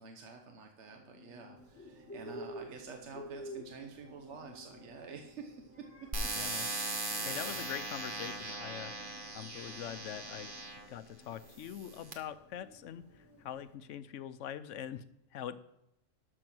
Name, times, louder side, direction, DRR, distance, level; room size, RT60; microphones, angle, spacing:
voice 1, 0.0-5.9 6.5-7.5, right 5 dB, 70° right, 4 dB, 1.2 m, -49 dB
sound 1, 0.8-14.1, left 1 dB, 10° right, 3.2 m, -59 dB
Bird, 1.6-13.7, equal, 10° left, 1.8 m, -51 dB
sound 2, 6.1-10.9 11.6-12.1, right 2 dB, 45° right, 1.4 m, -39 dB
voice 2, 6.4-6.7 7.3-8.9 9.3-10.5 10.9-13.0 13.4-15.0 15.3-15.6, left 10 dB, 80° left, 14 dB, 1.0 m, -43 dB
12.5 x 6.2 x 6.1 m, 0.84 s
omnidirectional pair, 1.2 m